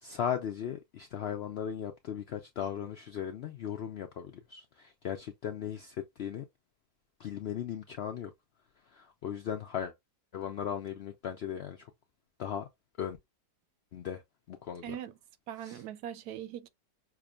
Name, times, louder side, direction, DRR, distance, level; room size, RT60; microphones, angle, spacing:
voice 1, 0.0-6.4 7.2-8.3 8.9-9.9 10.3-11.9 12.4-12.7 13.0-13.2 13.9-14.2 14.5-15.0 15.6-15.8, left 9 dB, 75° left, 0.5 m, -37 dB
voice 2, 14.8-15.2 15.5-16.7, right 10 dB, 85° right, 1.1 m, -41 dB
5.8 x 2.1 x 2.3 m
omnidirectional pair, 1.6 m